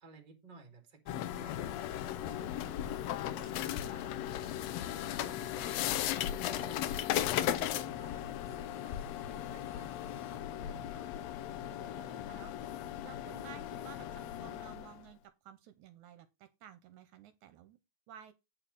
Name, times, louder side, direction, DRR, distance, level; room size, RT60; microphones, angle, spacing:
voice 1, 0.0-4.4 5.1-5.7 6.5-10.5 11.8-12.0, right 3 dB, 20° right, 1.3 m, -56 dB
sound 1, 1.1-15.0, left 11 dB, 80° left, 1.5 m, -37 dB
voice 2, 5.0-6.1 10.1-10.2 10.6-11.1 11.7-17.8 18.1-18.3, right 10 dB, 75° right, 2.0 m, -55 dB
8.6 x 4.5 x 5.3 m
omnidirectional pair, 3.7 m